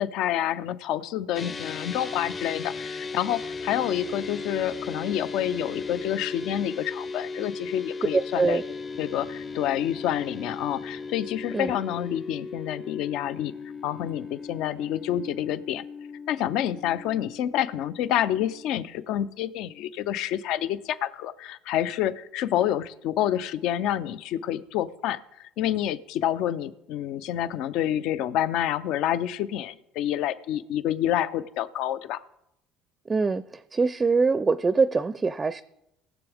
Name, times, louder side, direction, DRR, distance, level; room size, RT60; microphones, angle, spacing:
voice 1, 0.0-8.6 9.0-13.5 13.8-15.8 16.3-32.2, left 11 dB, 70° left, 14 dB, 0.6 m, -28 dB
sound 1, 1.3-18.8, left 4 dB, 30° left, 0.7 m, -37 dB
voice 2, 8.1-8.6 11.5-11.7 33.1-35.6, right 4 dB, 25° right, 15 dB, 0.5 m, -24 dB
19.5 x 7.1 x 3.5 m, 0.84 s
supercardioid pair, 100°, 0 cm